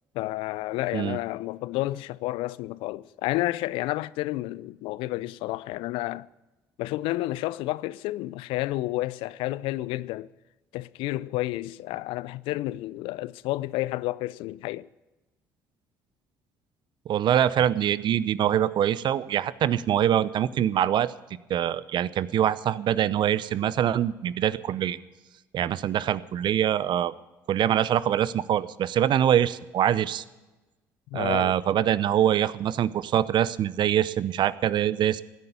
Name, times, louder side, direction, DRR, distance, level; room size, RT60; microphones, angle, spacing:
voice 1, 0.1-6.3 6.8-10.3 10.7-14.9 31.1-31.6, left 17 dB, 70° left, 0.4 m, -30 dB
voice 2, 17.1-21.1 21.5-25.0 25.5-27.1 27.5-30.2 31.1-35.2, right 10 dB, 55° right, 0.7 m, -24 dB
16.0 x 9.4 x 6.8 m
hypercardioid pair, 55°, 9 cm